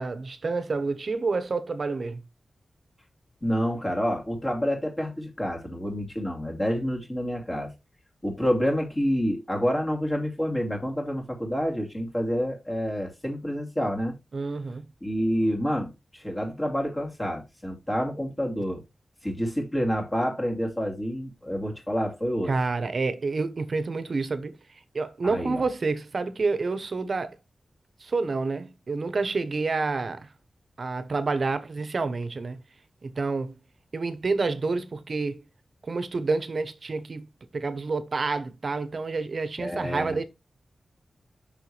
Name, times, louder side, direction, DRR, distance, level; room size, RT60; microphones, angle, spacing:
voice 1, 0.0-2.2 14.3-14.9 22.5-24.6 24.9-27.4 28.0-30.3 30.8-32.6 33.0-33.6 33.9-35.4 35.8-37.3 37.5-40.2, right 3 dB, 50° right, 0.9 m, -28 dB
voice 2, 3.4-7.7 8.2-14.1 15.0-18.8 19.2-22.5 25.2-25.6 39.6-40.2, equal, 20° left, 2.6 m, -28 dB
6.7 x 5.7 x 3.3 m
wide cardioid pair, 135°, 0 cm